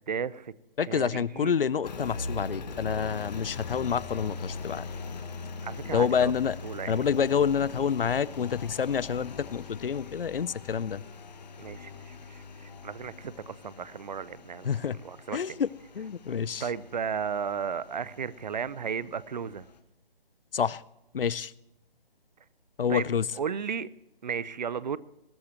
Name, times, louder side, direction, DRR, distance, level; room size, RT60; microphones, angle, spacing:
voice 1, 0.1-0.5 0.8-1.5 5.6-6.3 6.6-7.0 11.6-14.7 15.0-15.6 16.6-19.6 22.9-23.9 24.2-25.0, right 7 dB, 50° right, 19 dB, 0.7 m, -34 dB
voice 2, 0.8-4.8 5.8-6.6 6.9-11.0 14.6-15.0 15.3-15.7 15.9-16.7 20.5-20.8 21.1-21.5 22.8-23.3, left 7 dB, 70° left, 22 dB, 0.6 m, -28 dB
Engine, 1.8-19.8, left 4 dB, 45° left, 1.6 m, -42 dB
20.5 x 14.0 x 3.0 m, 0.86 s
figure-of-eight pair, 150°, 29 cm